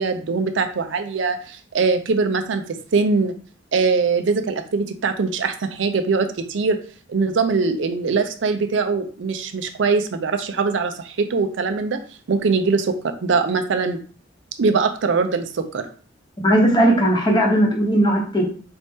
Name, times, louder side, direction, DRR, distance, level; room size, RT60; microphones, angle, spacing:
voice 1, 0.0-3.3 3.7-6.8 7.1-12.0 12.3-14.0 14.6-15.9, right 4 dB, 70° right, 7 dB, 0.5 m, -22 dB
voice 2, 16.4-18.4, right 1 dB, 20° left, -1 dB, 0.9 m, -17 dB
4.3 x 2.6 x 3.5 m, 0.41 s
head